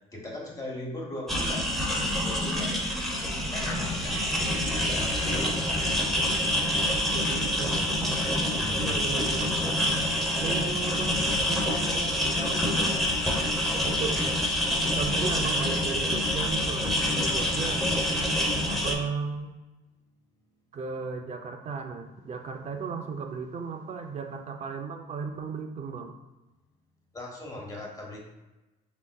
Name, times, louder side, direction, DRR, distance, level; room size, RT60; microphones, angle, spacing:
voice 1, 0.1-2.7 3.5-4.1 4.8-5.7 8.6-9.1 17.3-17.5 23.7-23.9 27.1-28.2, left 1 dB, 20° left, -2 dB, 1.2 m, -39 dB
sound 1, 1.3-18.9, left 1 dB, ahead, 0.8 m, -27 dB
voice 2, 7.1-8.2 8.7-9.6 10.4-13.0 13.8-14.2 14.9-17.0 17.3-17.8 18.7-19.5 20.7-26.1, right 5 dB, 40° right, 4 dB, 0.4 m, -35 dB
4.7 x 3.7 x 2.2 m, 1.1 s
cardioid pair, 110°, 17 cm